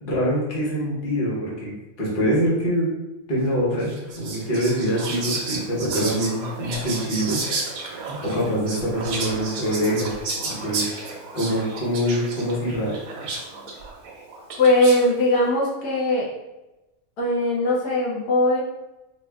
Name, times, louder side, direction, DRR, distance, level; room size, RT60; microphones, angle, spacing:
voice 1, 0.0-2.9 3.3-7.4 8.2-10.1 10.4-11.0 11.3-13.0, equal, 40° left, -6 dB, 1.1 m, -24 dB
Whispering, 3.8-15.1, right 3 dB, 80° right, 1.1 m, -32 dB
voice 2, 14.6-16.3 17.2-18.6, left 1 dB, 90° left, -4 dB, 1.4 m, -20 dB
4.5 x 2.5 x 2.2 m, 1.0 s
omnidirectional pair, 1.6 m